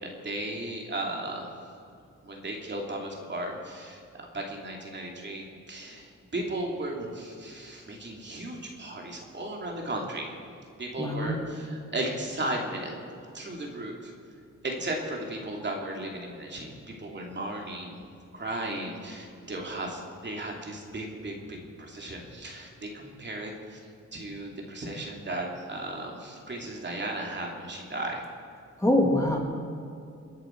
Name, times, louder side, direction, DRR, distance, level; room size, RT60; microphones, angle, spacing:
voice 1, 0.0-1.5 2.2-10.3 10.8-14.1 14.6-18.0 18.3-23.8 24.1-28.2, right 1 dB, 35° right, 0 dB, 2.7 m, -35 dB
voice 2, 11.0-11.3 28.8-29.4, left 1 dB, 10° left, -1 dB, 2.3 m, -23 dB
28.0 x 10.5 x 4.6 m, 2.5 s
wide cardioid pair, 125°, 31 cm